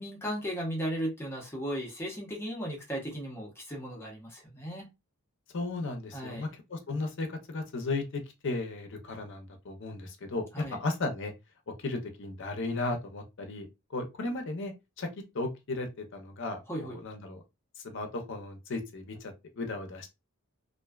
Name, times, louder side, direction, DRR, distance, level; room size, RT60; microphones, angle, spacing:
voice 1, 0.0-4.9 6.1-6.4 10.5-10.8 16.7-17.0, equal, 10° left, 0.7 m, -36 dB
voice 2, 5.5-11.3 11.8-13.7 13.9-14.7 15.0-15.1 15.3-17.4 17.9-20.1, left 2 dB, 60° left, 0.6 m, -35 dB
2.5 x 2.2 x 2.2 m
head